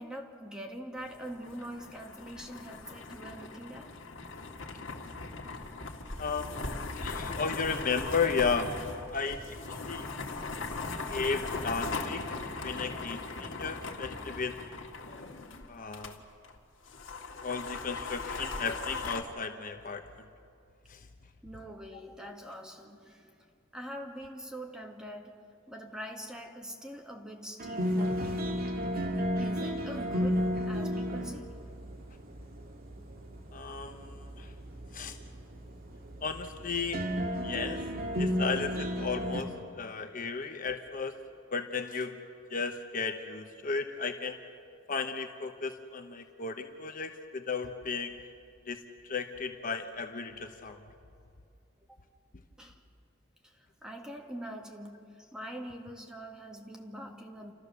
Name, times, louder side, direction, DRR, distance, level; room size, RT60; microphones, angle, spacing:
voice 1, 0.0-4.0 21.4-23.4 23.7-28.5 29.4-31.6 38.2-38.4 51.9-52.0 52.6-52.8 53.4-53.5 53.8-57.5, equal, 5° right, 1.8 m, -44 dB
sound 1, 1.0-16.2 16.4-16.5 16.9-19.2, left 3 dB, 80° left, 1.9 m, -39 dB
voice 2, 6.2-8.7 9.1-10.2 11.1-14.6 15.7-16.2 17.4-20.1 20.9-21.0 33.5-34.5 34.9-35.2 36.2-37.0 37.4-37.8 38.2-41.1 41.5-42.2 42.5-44.4 44.9-48.1 48.7-50.8, left 5 dB, 45° left, 1.0 m, -34 dB
sound 2, 27.6-39.4, equal, 50° right, 2.1 m, -33 dB
29.5 x 13.5 x 6.8 m
head